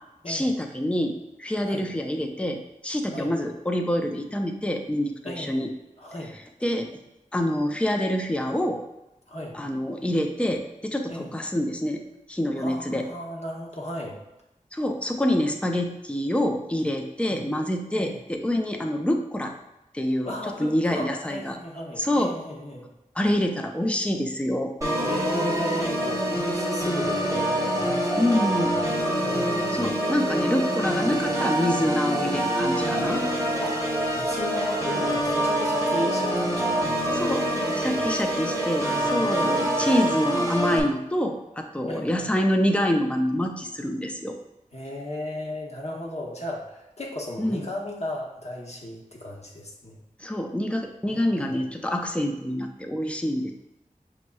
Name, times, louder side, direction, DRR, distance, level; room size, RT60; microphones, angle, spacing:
voice 1, 0.3-5.7 6.6-6.9 7.3-8.8 9.5-12.0 12.3-13.0 14.7-19.5 19.9-20.3 20.6-21.6 22.0-22.3 23.2-24.7 28.2-28.8 29.7-33.2 37.1-37.5 37.7-44.4 47.4-47.6 50.2-53.5, left 1 dB, 10° left, 3 dB, 0.5 m, -26 dB
voice 2, 5.2-5.7 6.0-6.4 9.3-9.6 11.1-11.3 12.6-14.2 17.2-17.4 17.9-18.2 20.2-22.9 25.0-29.9 33.6-38.1 38.7-39.3 41.9-42.4 44.7-50.0 51.0-51.6, left 1 dB, 50° left, -2 dB, 0.9 m, -36 dB
Organ, 24.8-40.8, right 1 dB, 20° right, 0.9 m, -25 dB
6.2 x 3.0 x 2.2 m, 0.94 s
wide cardioid pair, 50°, 14 cm